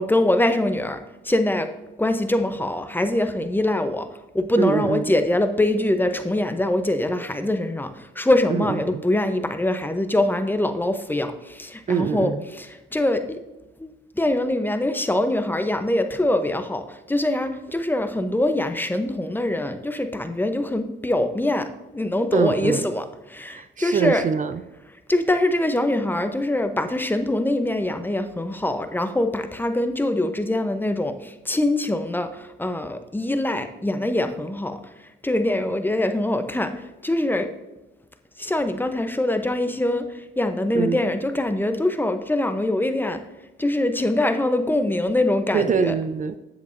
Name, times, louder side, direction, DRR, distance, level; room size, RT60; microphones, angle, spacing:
voice 1, 0.0-1.7 2.0-4.1 4.3-13.4 13.8-24.2 25.1-34.8 35.2-37.5 38.4-43.2 43.6-45.9, left 1 dB, 10° left, 8 dB, 0.7 m, -23 dB
voice 2, 4.6-5.0 8.5-9.0 11.9-12.4 22.3-22.8 23.5-24.6 40.7-41.0 45.5-46.4, right 6 dB, 40° right, 11 dB, 0.5 m, -24 dB
9.5 x 8.0 x 2.6 m, 1.1 s
cardioid pair, 90°, 20 cm